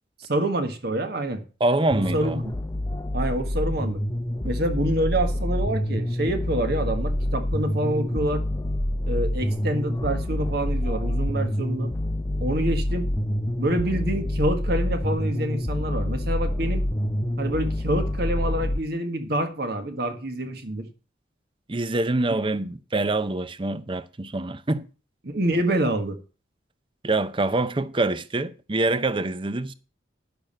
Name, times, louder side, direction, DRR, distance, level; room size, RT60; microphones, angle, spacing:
voice 1, 0.2-1.4 1.9-2.4 3.1-4.0 4.4-8.4 9.1-11.9 12.4-13.1 13.6-16.8 17.4-20.9 25.2-26.2, right 1 dB, 55° right, 1.5 m, -27 dB
voice 2, 1.6-2.4 21.7-24.9 27.0-29.7, right 2 dB, 25° right, 0.6 m, -25 dB
sound 1, 1.9-18.8, left 1 dB, 15° left, 0.6 m, -27 dB
10.5 x 6.9 x 5.5 m
head